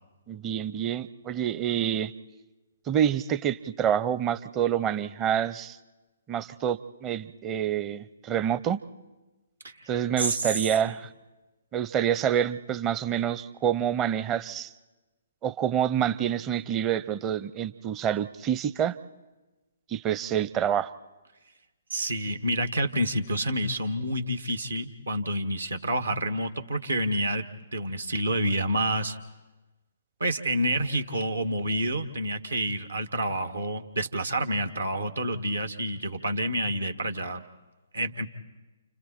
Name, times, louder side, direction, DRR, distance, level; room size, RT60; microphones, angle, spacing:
voice 1, 0.3-2.1 2.9-5.8 6.3-8.8 9.9-11.1 11.7-14.7 15.4-18.9 19.9-20.9, right 9 dB, 20° right, 16 dB, 0.7 m, -27 dB
voice 2, 10.2-10.5 21.9-27.5 27.7-29.2 30.2-37.4 37.9-38.3, right 1 dB, 75° right, 7 dB, 1.6 m, -28 dB
29.5 x 29.5 x 4.4 m, 1.1 s
figure-of-eight pair, 130°, 0 cm